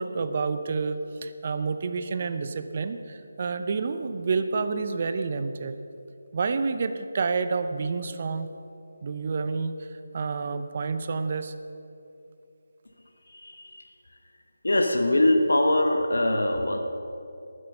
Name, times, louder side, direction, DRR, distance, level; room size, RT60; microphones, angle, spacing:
voice 1, 0.0-5.8 6.3-8.5 9.0-9.8 10.1-11.5, right 4 dB, 40° right, 10 dB, 0.7 m, -29 dB
voice 2, 13.3-13.8 14.6-16.8, left 1 dB, 75° left, 4 dB, 1.1 m, -23 dB
13.0 x 9.9 x 5.4 m, 2.7 s
figure-of-eight pair, 155°, 0 cm